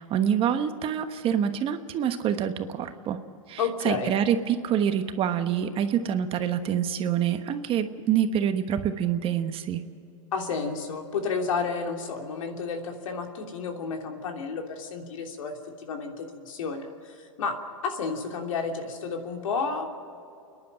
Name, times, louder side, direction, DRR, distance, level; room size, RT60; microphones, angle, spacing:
voice 1, 0.0-3.2 3.5-9.8, right 9 dB, 30° right, 9 dB, 1.2 m, -26 dB
voice 2, 3.6-4.1 10.3-15.5 15.8-17.6 17.8-19.9, left 5 dB, 75° left, 3 dB, 3.1 m, -31 dB
29.0 x 11.0 x 8.8 m, 2.6 s
hypercardioid pair, 115°, 17 cm